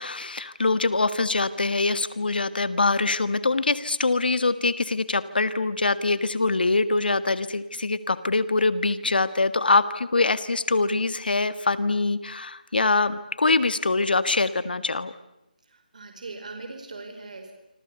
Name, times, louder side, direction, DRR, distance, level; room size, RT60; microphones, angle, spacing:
voice 1, 0.0-15.1, left 3 dB, 80° left, 13 dB, 1.7 m, -24 dB
voice 2, 15.7-17.5, right 3 dB, 55° right, 5 dB, 5.0 m, -40 dB
27.0 x 26.5 x 8.1 m, 0.91 s
hypercardioid pair, 175°, 5 cm